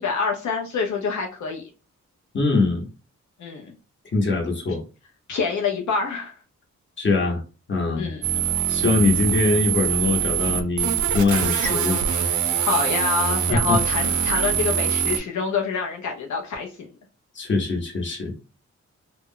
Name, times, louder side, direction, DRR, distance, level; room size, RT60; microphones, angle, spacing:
voice 1, 0.0-1.6 3.4-3.7 5.3-6.3 8.0-8.2 12.6-16.9, left 4 dB, 75° left, 0 dB, 0.6 m, -26 dB
voice 2, 2.3-2.9 4.1-4.8 7.0-7.4 7.7-8.1 8.7-12.0 13.5-13.8 17.3-18.3, left 3 dB, 40° left, 1 dB, 0.9 m, -22 dB
sound 1, 8.2-15.2, right 9 dB, 85° right, 0.5 m, -23 dB
2.3 x 2.1 x 3.6 m, 0.33 s
wide cardioid pair, 145°, 29 cm